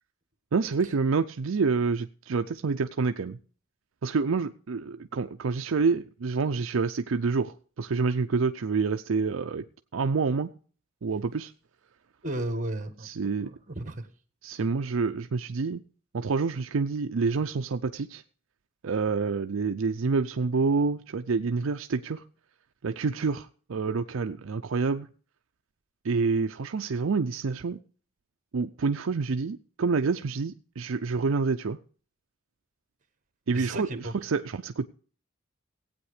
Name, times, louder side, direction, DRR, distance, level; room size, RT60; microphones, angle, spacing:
voice 1, 0.5-3.4 4.0-9.6 9.9-10.5 11.0-11.5 13.0-13.5 14.4-15.8 16.1-18.2 18.8-22.2 22.8-25.1 26.0-27.8 28.5-31.8 33.5-33.9 34.2-34.9, right 4 dB, 70° right, 8 dB, 0.5 m, -27 dB
voice 2, 12.2-13.1 13.4-14.1 33.5-34.1, right 1 dB, 40° right, 9 dB, 1.6 m, -34 dB
16.0 x 8.9 x 4.9 m, 0.42 s
head